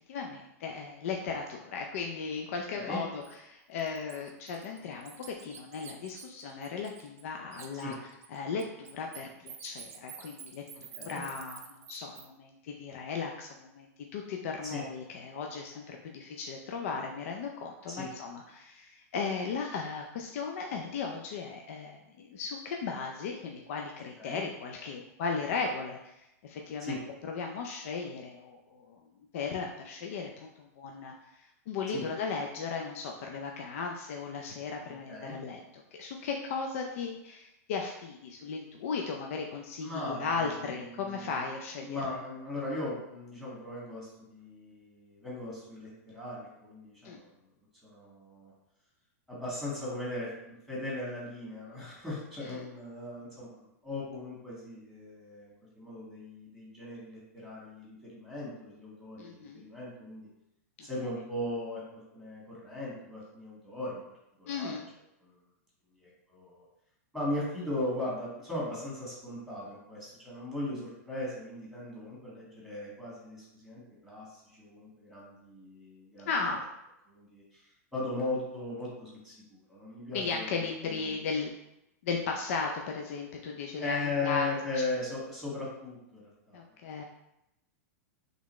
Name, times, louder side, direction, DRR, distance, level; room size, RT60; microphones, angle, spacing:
voice 1, 0.1-8.0 8.3-27.0 27.3-29.0 29.3-42.2 47.0-47.2 52.4-52.7 59.2-59.6 60.8-60.9 64.5-64.8 76.3-76.7 80.1-81.5 82.0-84.5 86.5-87.0, left 5 dB, 60° left, 2 dB, 0.5 m, -36 dB
Bird, 3.2-3.3 3.8-7.2 7.5-12.3, right 8 dB, 70° right, 0.7 m, -48 dB
voice 2, 34.8-35.3 39.8-41.5 41.8-47.3 47.8-48.5 49.3-60.3 60.8-61.8 62.1-64.0 64.4-64.7 65.2-65.3 66.0-66.6 67.1-76.3 77.1-77.6 77.9-80.5 80.9-81.2 83.8-86.6, left 2 dB, 5° left, -6 dB, 1.6 m, -38 dB
3.9 x 3.5 x 3.1 m, 0.86 s
supercardioid pair, 150°, 8 cm